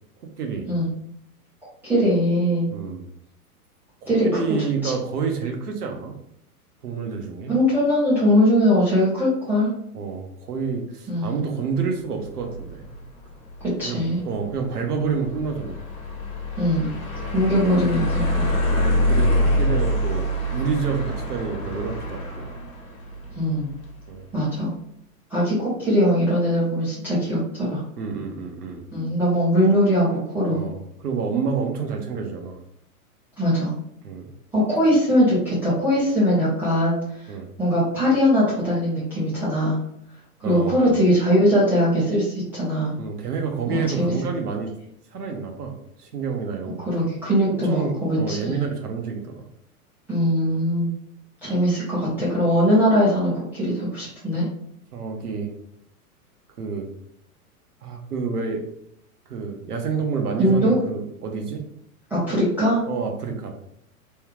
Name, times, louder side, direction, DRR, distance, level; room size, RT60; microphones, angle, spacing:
voice 1, 0.4-0.7 2.7-3.1 4.0-6.1 6.8-7.5 9.9-12.9 13.8-15.8 18.7-20.3 20.5-22.5 24.1-24.3 28.0-28.8 30.5-32.6 34.0-34.3 37.3-37.5 40.4-41.0 43.0-44.7 45.1-46.8 47.5-49.5 54.9-55.5 56.6-56.9 57.8-58.6 59.3-61.6 62.9-63.6, right 5 dB, 80° right, 3 dB, 0.9 m, -28 dB
voice 2, 1.8-2.7 4.1-4.3 4.8-4.9 7.5-9.7 11.1-11.4 13.8-14.2 16.6-16.9 17.3-18.5 23.3-23.7 24.3-24.7 25.3-27.8 28.9-30.6 33.4-33.7 34.5-37.3 37.6-39.8 40.4-42.9 43.7-44.1 46.9-48.6 50.1-50.9 51.4-54.5 60.4-60.8 62.1-62.8, equal, 5° right, -12 dB, 0.3 m, -21 dB
sound 1, 12.1-24.2, left 1 dB, 30° left, 1.0 m, -26 dB
3.3 x 2.3 x 3.2 m, 0.73 s
hypercardioid pair, 120°, 45 cm